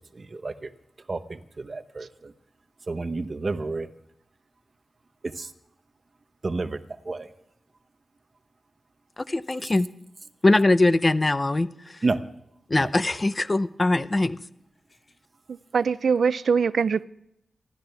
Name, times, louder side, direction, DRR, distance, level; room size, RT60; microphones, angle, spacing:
voice 1, 0.1-0.7 1.1-2.3 2.9-3.9 5.4-5.5 6.4-6.8 7.0-7.3 12.0-12.2 12.8-12.9, right 3 dB, 40° right, 10 dB, 0.9 m, -30 dB
voice 2, 9.3-9.9 10.4-11.7 12.7-14.4, left 2 dB, 30° left, 14 dB, 0.6 m, -21 dB
voice 3, 15.5-17.0, right 6 dB, 80° right, 16 dB, 0.5 m, -23 dB
28.0 x 12.5 x 3.4 m, 0.78 s
wide cardioid pair, 95°, 0 cm